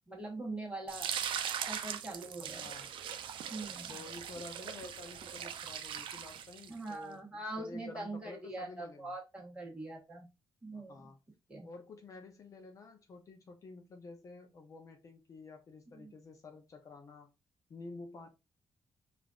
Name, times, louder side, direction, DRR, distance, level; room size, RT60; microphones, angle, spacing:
voice 1, 0.1-1.1 1.7-2.7 3.5-4.0 6.7-10.3 10.6-11.1 11.5-11.7 16.0-16.1, right 2 dB, 10° right, 1.2 m, -42 dB
sound 1, 0.9-6.9, right 9 dB, 85° right, 0.4 m, -40 dB
voice 2, 2.6-2.9 3.9-9.1 10.7-11.2 11.6-17.3 17.7-18.3, left 3 dB, 40° left, 0.5 m, -50 dB
5.0 x 2.5 x 2.3 m
wide cardioid pair, 175°, 8 cm